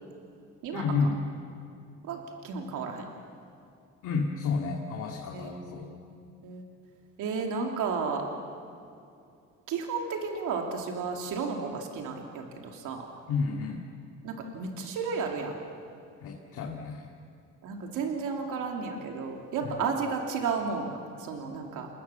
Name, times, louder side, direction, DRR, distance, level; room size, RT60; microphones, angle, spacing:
voice 1, 0.7-1.2 4.0-5.9 13.3-13.8 16.2-17.1 19.6-19.9, left 4 dB, 80° left, -1 dB, 2.5 m, -31 dB
voice 2, 2.4-3.1 5.3-6.6 7.2-8.2 9.7-13.0 14.2-15.6 17.6-21.9, right 5 dB, 90° right, 1 dB, 2.9 m, -33 dB
29.5 x 20.0 x 7.1 m, 2.5 s
cardioid pair, 90°, 30 cm